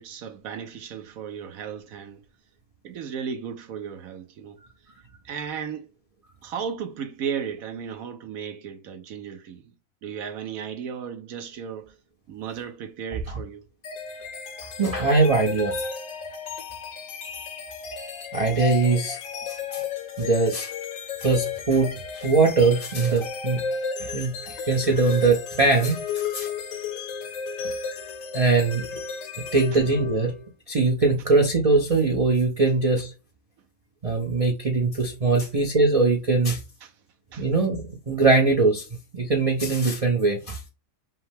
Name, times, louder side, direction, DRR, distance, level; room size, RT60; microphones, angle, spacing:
voice 1, 0.0-2.2 2.8-4.6 5.2-5.9 6.4-9.7 10.0-11.9 12.3-13.6 35.4-35.5 36.8-36.9 37.3-37.5, right 7 dB, 70° right, 1.1 m, -35 dB
sound 1, 13.8-30.5, left 5 dB, 65° left, 1.1 m, -33 dB
voice 2, 14.8-15.8 18.3-19.2 19.5-19.8 20.2-20.7 21.2-23.6 24.0-26.5 28.3-28.8 29.5-30.3 30.7-33.1 34.0-36.6 37.4-38.8 39.1-40.6, right 3 dB, 40° right, 0.5 m, -21 dB
5.6 x 2.1 x 3.4 m
omnidirectional pair, 1.6 m